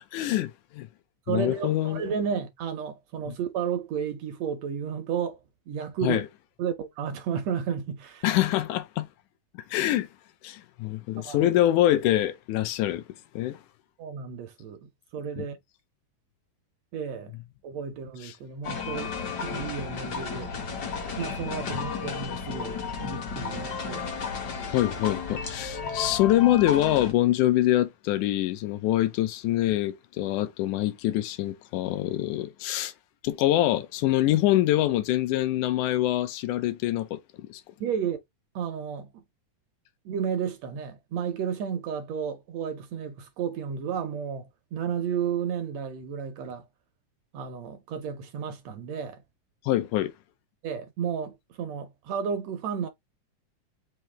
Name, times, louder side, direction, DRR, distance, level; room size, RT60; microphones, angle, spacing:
voice 1, 0.1-0.9 1.3-2.0 3.3-3.4 6.0-6.3 8.2-9.1 9.7-10.1 10.4-13.0 13.3-13.6 18.2-18.3 24.7-32.9 33.2-37.6 49.7-50.1, left 14 dB, 80° left, 2.1 m, -25 dB
voice 2, 1.3-5.4 5.7-6.2 6.6-8.2 11.2-11.5 14.0-15.6 16.9-17.3 17.6-19.1 19.4-20.5 21.2-24.0 37.8-38.2 38.5-39.2 40.0-46.6 47.3-49.2 50.6-52.9, right 7 dB, 70° right, 1.7 m, -32 dB
sound 1, 18.6-27.1, left 5 dB, 55° left, 1.1 m, -33 dB
5.5 x 2.7 x 3.3 m
omnidirectional pair, 3.6 m